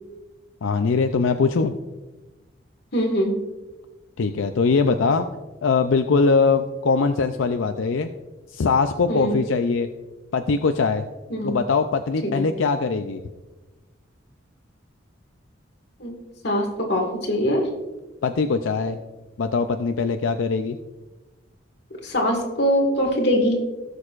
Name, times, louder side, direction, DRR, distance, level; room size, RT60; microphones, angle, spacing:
voice 1, 0.6-1.7 4.2-5.3 5.6-8.1 8.5-9.9 10.3-11.0 11.4-13.2 18.2-19.0 19.4-20.8, left 4 dB, 90° left, 7 dB, 0.5 m, -21 dB
voice 2, 2.9-3.4 9.1-9.4 11.3-11.6 12.3-12.5 16.0-16.2 16.4-17.7 22.0-23.6, equal, 60° left, 1 dB, 1.9 m, -22 dB
18.0 x 6.5 x 2.5 m, 1.2 s
head